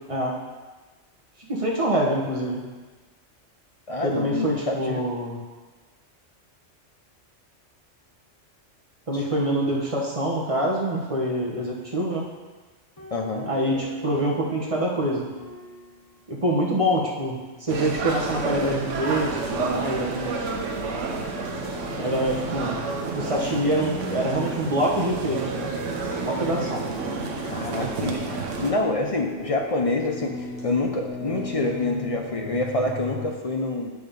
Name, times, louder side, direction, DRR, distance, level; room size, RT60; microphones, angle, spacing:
voice 1, 1.5-2.6 4.0-5.4 9.1-12.3 13.5-15.3 16.3-20.5 22.0-22.9 23.1-25.7 26.2-26.8, right 1 dB, 30° right, -2 dB, 1.3 m, -25 dB
voice 2, 3.9-5.0 9.1-9.2 13.1-13.5 27.4-33.9, left 2 dB, 35° left, 2 dB, 0.7 m, -27 dB
sound 1, 13.0-16.5 16.8-16.9 19.1-22.4 24.6-27.8, right 1 dB, 20° left, 1.0 m, -41 dB
sound 2, 17.7-28.7, right 4 dB, 85° right, 1.1 m, -30 dB
sound 3, 17.8-33.3, left 3 dB, 5° right, 1.7 m, -38 dB
8.1 x 4.7 x 5.3 m, 1.3 s
omnidirectional pair, 1.3 m